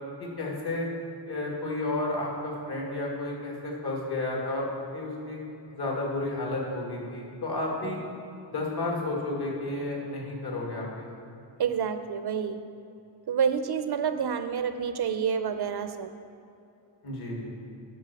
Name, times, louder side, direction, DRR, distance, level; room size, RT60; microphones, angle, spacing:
voice 1, 0.2-0.9 1.3-4.7 4.9-5.4 5.7-8.0 8.5-11.3 17.0-17.5, left 2 dB, 55° left, -2 dB, 2.0 m, -32 dB
voice 2, 11.6-12.6 13.3-16.1, right 7 dB, 55° right, 9 dB, 0.5 m, -28 dB
9.3 x 5.3 x 6.9 m, 2.7 s
wide cardioid pair, 155°, 46 cm